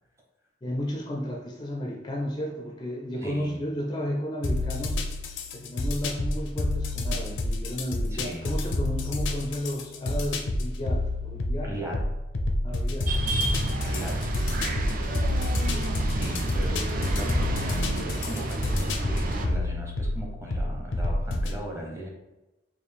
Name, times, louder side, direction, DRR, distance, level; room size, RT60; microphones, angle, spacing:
voice 1, 0.6-5.0 5.5-11.7 12.6-13.1, equal, 25° left, -1 dB, 0.4 m, -33 dB
voice 2, 3.2-3.6 8.1-8.6 11.6-12.1 13.8-14.3 15.7-22.1, right 1 dB, 15° right, -1 dB, 0.8 m, -38 dB
sound 1, 4.4-21.6, left 2 dB, 85° left, 0.5 m, -29 dB
sound 2, 13.1-19.5, right 1 dB, 45° right, 0.4 m, -29 dB
4.3 x 2.5 x 3.4 m, 1.0 s
head